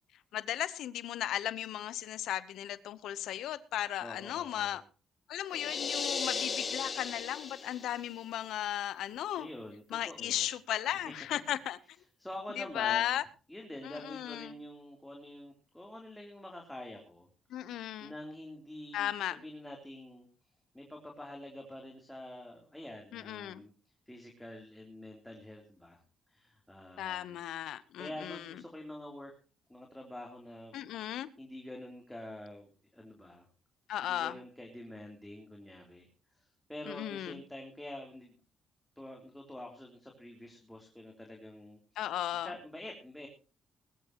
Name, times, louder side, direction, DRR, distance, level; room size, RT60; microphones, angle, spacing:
voice 1, 0.3-4.8 5.3-9.5 9.9-11.8 12.6-13.2 13.8-14.5 17.5-18.1 18.9-19.4 23.1-23.6 27.0-28.5 30.7-31.3 33.9-34.4 36.9-37.4 42.0-42.5, left 12 dB, 80° left, 16 dB, 0.9 m, -36 dB
voice 2, 4.0-4.8 9.4-10.5 11.0-11.1 12.2-13.2 13.5-17.3 17.6-20.3 20.7-23.7 24.1-26.0 26.3-27.4 28.0-29.3 29.7-30.8 31.4-33.5 34.1-36.1 36.3-38.3 38.9-42.0 42.3-43.3, left 1 dB, 5° left, 1 dB, 3.3 m, -46 dB
sound 1, 5.5-8.0, left 5 dB, 45° left, 2.2 m, -36 dB
20.5 x 13.0 x 3.0 m, 0.37 s
cardioid pair, 90°, 0 cm